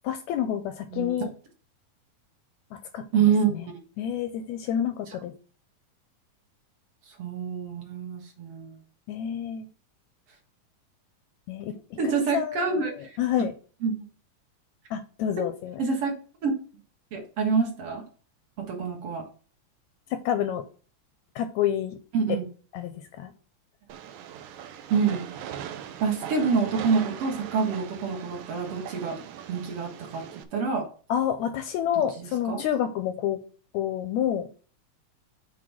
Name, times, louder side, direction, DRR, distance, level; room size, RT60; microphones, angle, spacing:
voice 1, 0.0-1.3 2.9-3.1 3.5-3.6 4.0-5.3 9.1-9.7 11.5-13.5 14.9-15.8 20.1-20.6 21.4-22.0 22.7-23.3 31.1-33.4 33.7-34.5, left 10 dB, 80° left, 9 dB, 1.7 m, -28 dB
voice 2, 3.1-3.7 7.2-8.8 12.0-13.2 13.8-14.0 15.8-16.1 16.4-16.5 17.1-18.0 18.6-19.2 22.1-22.4 24.9-25.3 26.0-29.2 29.5-30.2 30.5-30.9 32.2-32.6, right 5 dB, 55° right, 1 dB, 2.3 m, -26 dB
Train, 23.9-30.4, right 9 dB, 75° right, 2.1 m, -40 dB
7.7 x 3.7 x 6.0 m, 0.40 s
omnidirectional pair, 3.6 m